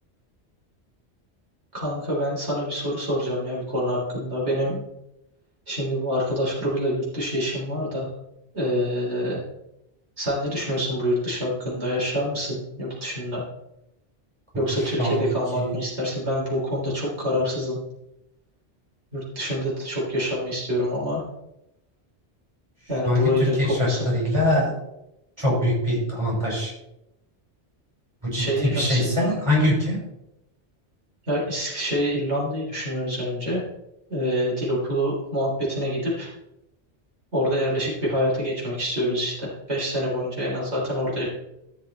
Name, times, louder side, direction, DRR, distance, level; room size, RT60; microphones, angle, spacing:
voice 1, 1.7-4.8 5.7-8.1 8.5-9.4 10.2-13.4 14.5-17.8 19.1-21.2 22.9-24.2 28.3-29.4 31.3-33.6 34.1-36.3 37.3-41.3, equal, 80° right, -6 dB, 4.1 m, -26 dB
voice 2, 23.6-24.7 25.4-26.7 28.2-30.0, left 1 dB, 25° right, -5 dB, 4.6 m, -23 dB
14.0 x 6.1 x 4.3 m, 0.87 s
omnidirectional pair, 1.1 m